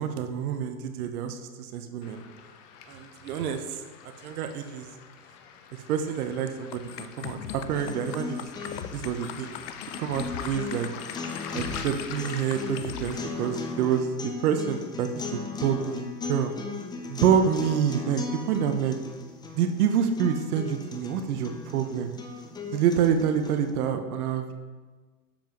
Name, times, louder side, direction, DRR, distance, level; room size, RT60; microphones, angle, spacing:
voice 1, 0.0-2.2 2.9-3.8 4.2-4.9 5.7-8.5 8.9-9.6 10.0-10.9 11.5-16.5 17.1-19.0 19.5-22.1 22.7-24.5, right 8 dB, 65° right, 7 dB, 0.9 m, -27 dB
Waves surf, 2.0-14.0, left 7 dB, 45° left, 0.8 m, -44 dB
sound 1, 6.7-13.1, left 10 dB, 85° left, 0.6 m, -39 dB
sound 2, 7.7-23.7, left 4 dB, 10° left, 0.4 m, -38 dB
7.2 x 7.0 x 3.1 m, 1.3 s
hypercardioid pair, 105°, 47 cm